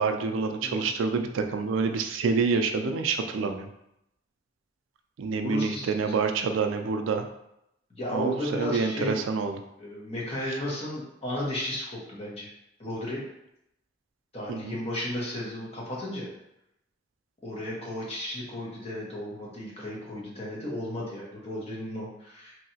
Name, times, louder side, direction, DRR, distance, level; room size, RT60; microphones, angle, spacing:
voice 1, 0.0-3.7 5.2-7.3 8.1-9.6 14.5-14.8, right 4 dB, 85° right, 6 dB, 0.4 m, -27 dB
voice 2, 5.4-5.9 7.9-9.2 9.8-12.5 12.8-13.2 14.3-16.3 17.4-22.6, left 1 dB, 30° left, -4 dB, 0.9 m, -34 dB
3.0 x 2.8 x 2.7 m, 0.81 s
head